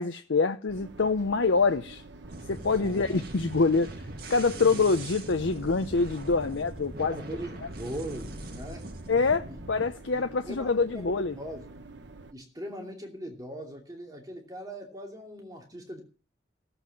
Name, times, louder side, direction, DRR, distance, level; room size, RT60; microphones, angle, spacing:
voice 1, 0.0-2.0 2.5-3.9 4.3-7.2 9.1-11.3, left 4 dB, 90° left, 0.7 m, -25 dB
sound 1, 0.7-12.3, right 3 dB, 75° right, 1.1 m, -48 dB
sound 2, 2.2-9.9, right 2 dB, 55° right, 1.8 m, -41 dB
voice 2, 2.8-3.2 4.5-4.9 6.9-8.9 9.5-9.6 10.1-11.7 12.3-16.0, equal, 20° right, 2.7 m, -40 dB
15.5 x 8.0 x 7.3 m
head